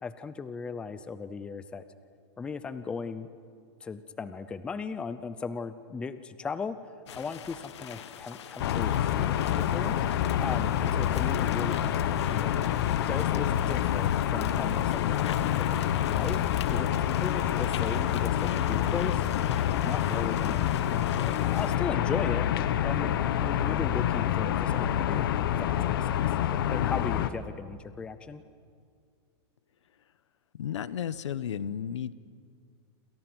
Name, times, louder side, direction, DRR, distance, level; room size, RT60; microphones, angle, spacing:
voice 1, 0.0-1.8 2.4-3.3 3.8-6.8 7.1-10.0 10.4-12.6 13.1-16.9 17.1-19.3 19.8-22.5 22.8-26.2 26.7-28.4, left 5 dB, 5° left, 12 dB, 0.6 m, -37 dB
sound 1, 7.1-21.8, left 9 dB, 70° left, 1.7 m, -43 dB
sound 2, 8.6-27.3, left 10 dB, 50° left, 1.1 m, -27 dB
voice 2, 30.5-32.1, left 9 dB, 90° left, 16 dB, 1.1 m, -33 dB
28.5 x 28.0 x 6.2 m, 2.2 s
supercardioid pair, 170°, 15 cm